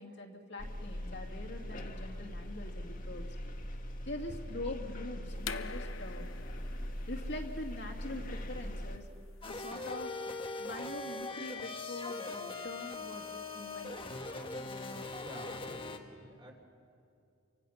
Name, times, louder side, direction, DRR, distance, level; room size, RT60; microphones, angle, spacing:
voice 1, 0.0-3.3 4.1-6.3 7.1-9.1 9.4-14.2, left 2 dB, 60° left, 1 dB, 2.4 m, -44 dB
sound 1, 0.6-9.0, equal, 45° left, 1.8 m, -41 dB
sound 2, 5.4-11.0, left 6 dB, 75° left, 0.9 m, -47 dB
sound 3, 9.4-16.0, left 3 dB, 25° left, 1.4 m, -41 dB
voice 2, 15.2-16.5, equal, 25° right, 2 dB, 3.4 m, -49 dB
29.5 x 25.0 x 5.9 m, 2.4 s
head